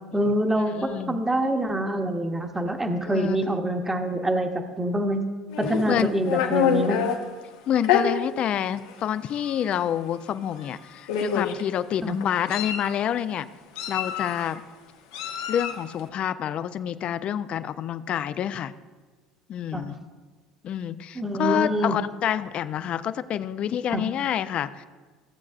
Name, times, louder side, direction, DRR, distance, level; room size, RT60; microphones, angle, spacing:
voice 1, 0.1-4.5 4.8-5.2 5.6-7.0 12.0-12.2 19.7-19.9 21.1-21.9 23.9-24.0, right 1 dB, 15° right, 5 dB, 1.0 m, -25 dB
voice 2, 0.7-1.2 3.0-3.4 5.9-6.1 7.7-13.5 13.9-14.6 15.5-18.7 19.5-20.0 20.6-24.8, left 10 dB, 50° left, 14 dB, 0.4 m, -28 dB
Meow, 5.5-7.2 7.8-8.0 8.9-9.0 9.4-9.6 10.6-10.7 11.1-11.6 12.2-12.9 13.8-14.5 15.1-15.8, left 8 dB, 80° left, 1.0 m, -26 dB
15.5 x 7.3 x 2.5 m, 1.3 s
hypercardioid pair, 80°, 2 cm